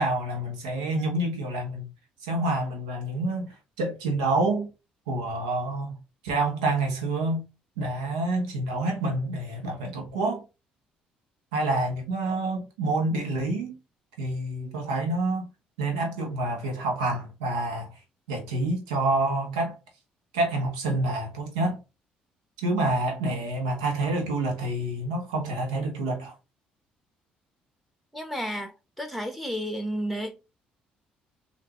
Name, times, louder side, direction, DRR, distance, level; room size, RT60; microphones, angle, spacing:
voice 1, 0.0-1.9 2.2-4.7 5.1-6.0 6.2-7.5 7.8-10.4 11.5-13.8 14.2-15.5 15.8-17.9 18.3-19.7 20.3-21.8 22.6-26.3, right 2 dB, 90° right, 1.0 m, -27 dB
voice 2, 28.1-28.7 29.0-30.4, equal, ahead, 1.0 m, -31 dB
3.4 x 2.5 x 3.0 m
hypercardioid pair, 60°, 4 cm